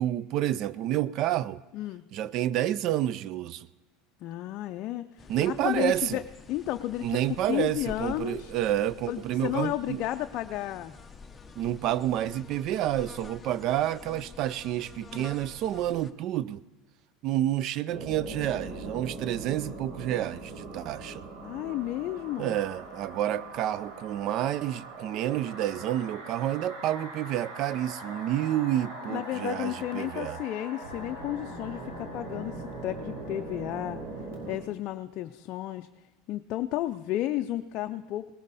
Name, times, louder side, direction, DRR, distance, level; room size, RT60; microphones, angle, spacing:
voice 1, 0.0-1.6 2.1-3.7 5.3-6.2 7.0-10.0 11.6-16.6 17.2-21.2 22.4-30.4, right 12 dB, 50° right, 19 dB, 0.3 m, -29 dB
voice 2, 1.7-2.1 4.2-6.2 6.5-7.2 7.5-8.5 9.1-10.9 21.4-22.6 29.1-32.6 32.8-34.0 34.5-35.9 36.3-38.3, left 14 dB, 50° left, 6 dB, 0.4 m, -32 dB
sound 1, 5.2-16.1, left 4 dB, 15° left, 0.8 m, -48 dB
sound 2, 17.9-34.6, right 2 dB, 80° right, 3.9 m, -41 dB
19.0 x 12.5 x 4.1 m, 1.1 s
supercardioid pair, 125°, 0 cm